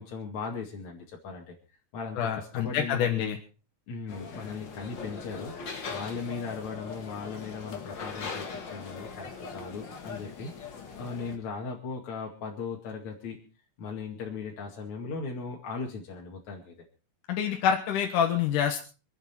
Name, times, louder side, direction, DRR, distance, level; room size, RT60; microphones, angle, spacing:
voice 1, 0.0-1.5 1.9-3.2 3.9-5.5 5.9-10.5 11.0-13.4 13.8-16.8, left 4 dB, 65° left, -1 dB, 3.6 m, -38 dB
voice 2, 2.2-3.3 17.3-18.8, left 8 dB, 85° left, 3 dB, 3.0 m, -26 dB
sound 1, 4.1-11.4, left 5 dB, 40° left, 2.1 m, -40 dB
27.0 x 9.0 x 4.4 m, 0.35 s
omnidirectional pair, 3.6 m